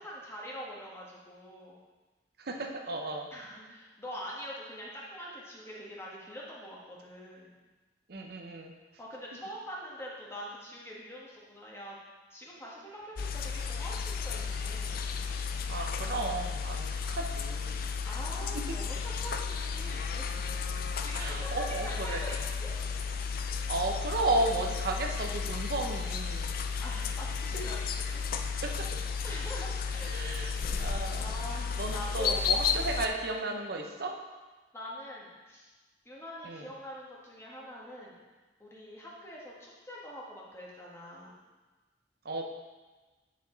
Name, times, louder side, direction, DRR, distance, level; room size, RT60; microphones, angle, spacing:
voice 1, 0.0-1.8 3.3-7.5 9.0-12.0 12.3-15.0 18.0-20.3 21.0-22.8 26.8-28.3 29.2-30.4 31.2-32.4 34.7-35.7 36.0-38.2 38.6-41.4, equal, 15° left, -5 dB, 1.5 m, -44 dB
voice 2, 2.4-3.3 8.1-8.7 15.7-17.8 18.5-18.6 21.2-22.2 23.7-26.5 28.6-28.9 30.1-30.5 30.8-31.2 31.8-34.1 36.4-36.7 42.2-42.4, right 2 dB, 60° right, 2 dB, 0.7 m, -33 dB
sound 1, 13.2-33.1, left 5 dB, 55° left, 0.4 m, -33 dB
9.3 x 5.1 x 3.9 m, 1.2 s
head